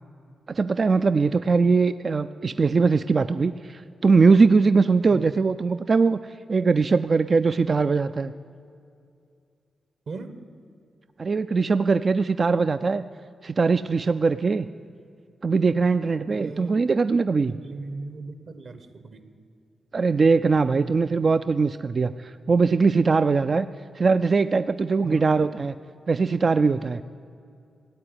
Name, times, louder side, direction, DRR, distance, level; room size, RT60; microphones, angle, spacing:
voice 1, 0.5-6.2 6.5-8.3 11.2-13.0 13.4-14.7 15.4-17.6 19.9-23.7 23.9-25.7 26.1-27.0, right 4 dB, 40° right, 11 dB, 0.3 m, -21 dB
voice 2, 10.1-10.4 16.3-16.7 17.4-19.3 25.0-25.2, right 3 dB, 60° right, 10 dB, 1.2 m, -37 dB
16.0 x 8.6 x 9.8 m, 2.4 s
wide cardioid pair, 115°, 0 cm